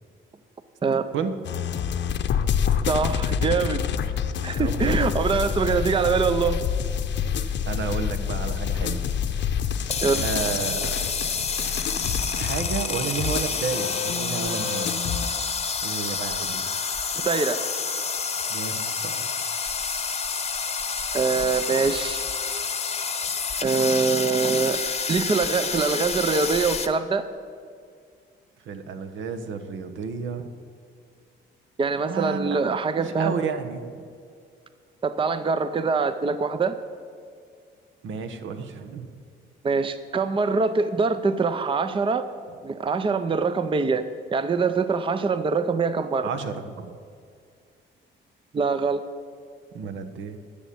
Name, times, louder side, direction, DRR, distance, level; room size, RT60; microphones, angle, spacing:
voice 1, 1.1-1.6 4.6-5.1 7.5-9.5 10.2-11.1 12.3-14.9 15.8-16.7 18.5-19.3 28.7-30.6 32.0-34.0 38.0-39.1 46.2-47.0 49.7-50.4, right 5 dB, 75° right, 8 dB, 1.1 m, -32 dB
sound 1, 1.4-15.3, left 8 dB, 65° left, 0.8 m, -27 dB
voice 2, 2.9-3.8 4.4-6.6 10.0-10.2 17.1-17.6 21.1-22.2 23.6-24.8 25.1-27.2 31.8-33.3 35.0-36.8 39.6-42.2 42.6-44.0 44.3-46.3 48.5-49.0, right 4 dB, 25° right, 11 dB, 0.6 m, -24 dB
sound 2, 9.8-26.9, left 5 dB, 30° left, 0.9 m, -29 dB
12.0 x 7.1 x 8.5 m, 2.2 s
cardioid pair, 90°, 20 cm